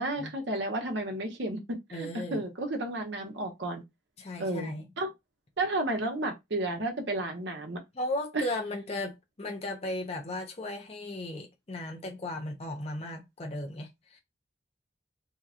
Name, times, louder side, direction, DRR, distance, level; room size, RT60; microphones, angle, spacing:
voice 1, 0.0-3.8 4.4-5.1 5.6-7.8 8.3-8.4, right 2 dB, 70° right, 0.9 m, -32 dB
voice 2, 1.9-2.4 4.2-4.9 7.9-14.2, left 1 dB, 35° left, 0.6 m, -36 dB
2.9 x 2.3 x 3.6 m
head